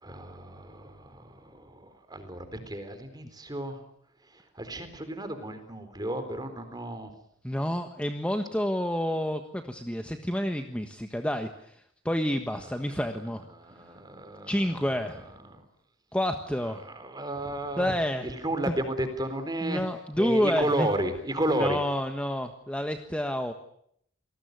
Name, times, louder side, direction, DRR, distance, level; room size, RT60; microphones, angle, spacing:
voice 1, 0.0-3.8 4.6-7.1 13.5-15.6 16.9-17.9 18.2-19.8 20.2-21.8, right 1 dB, 20° right, 9 dB, 4.1 m, -33 dB
voice 2, 7.4-11.7 12.0-13.4 14.5-15.2 16.1-16.8 17.8-18.3 19.6-20.9 21.5-23.5, equal, 5° left, 6 dB, 1.4 m, -29 dB
28.0 x 19.5 x 9.5 m, 0.70 s
head